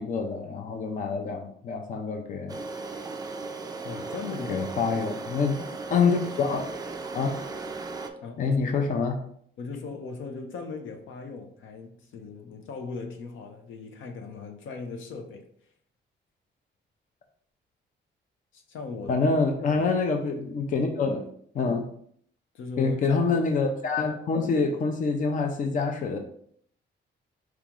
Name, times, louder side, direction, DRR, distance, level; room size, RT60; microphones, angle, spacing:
voice 1, 0.0-2.6 4.5-5.6 5.9-6.7 7.1-7.4 8.4-9.2 19.1-21.3 21.5-21.9 22.8-26.2, left 4 dB, 40° left, 0.5 m, -26 dB
sound 1, 2.5-8.1, right 3 dB, 20° right, 0.3 m, -36 dB
voice 2, 3.8-5.0 8.2-8.6 9.6-15.5 18.5-19.3 19.7-19.9 22.5-23.5, left 4 dB, 85° left, 0.8 m, -38 dB
4.7 x 3.0 x 3.7 m
wide cardioid pair, 175°, 20 cm